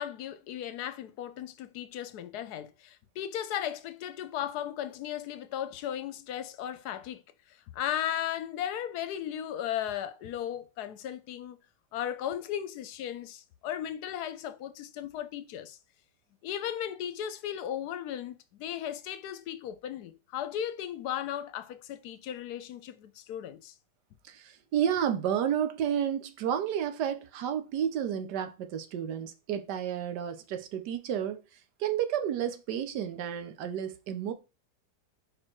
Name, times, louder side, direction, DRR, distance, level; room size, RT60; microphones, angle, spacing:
voice 1, 0.0-7.2 7.7-11.6 11.9-15.8 16.4-23.7, left 10 dB, 75° left, 1.2 m, -36 dB
voice 2, 24.2-31.4 31.8-34.3, right 9 dB, 85° right, 1.4 m, -31 dB
5.0 x 4.4 x 4.4 m
omnidirectional pair, 1.8 m